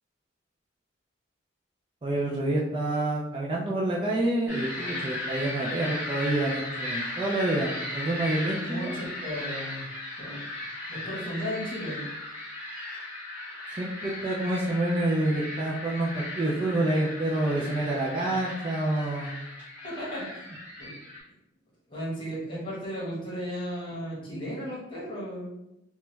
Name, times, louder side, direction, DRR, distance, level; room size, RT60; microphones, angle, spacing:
voice 1, 2.0-9.0 13.8-19.3, right 1 dB, 25° right, -4 dB, 0.3 m, -28 dB
sound 1, 4.5-21.2, left 1 dB, 5° right, 1.0 m, -37 dB
voice 2, 8.6-9.9 10.2-10.4 10.9-12.1 19.8-20.4 20.8-20.9 21.9-25.5, equal, 25° left, -7 dB, 1.1 m, -35 dB
2.9 x 2.2 x 3.1 m, 0.89 s
head